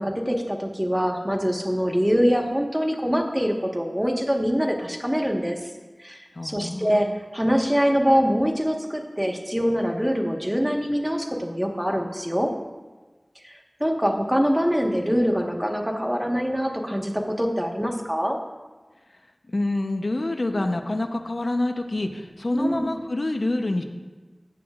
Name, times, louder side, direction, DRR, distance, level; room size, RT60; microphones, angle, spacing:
voice 1, 0.0-5.6 6.0-7.1 7.3-12.5 13.4-18.4 22.5-22.9, equal, 10° right, 1 dB, 1.4 m, -24 dB
voice 2, 6.3-7.2 19.5-23.8, left 2 dB, 65° left, 5 dB, 0.8 m, -27 dB
14.5 x 8.9 x 2.5 m, 1.3 s
wide cardioid pair, 55°, 0 cm